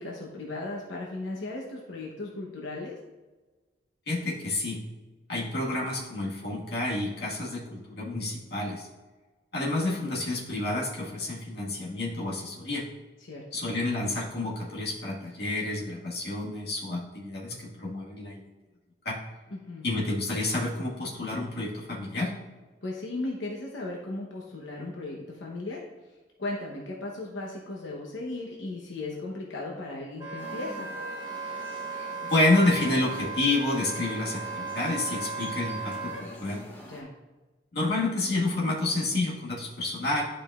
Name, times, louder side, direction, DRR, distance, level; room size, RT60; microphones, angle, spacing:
voice 1, 0.0-3.0 13.2-13.6 19.5-19.9 22.8-30.9 36.9-37.1, left 2 dB, 85° left, -2 dB, 1.0 m, -36 dB
voice 2, 4.1-4.8 5.3-8.9 9.5-12.9 13.5-18.4 19.0-19.2 19.8-22.3 32.2-36.6 37.7-40.2, left 2 dB, 60° left, -4 dB, 1.7 m, -29 dB
Wind instrument woodwind instrument, 30.2-36.2, right 4 dB, 25° right, 2.0 m, -36 dB
sound 1, 30.4-37.0, equal, 10° left, 0.9 m, -46 dB
11.0 x 5.0 x 2.4 m, 1.2 s
head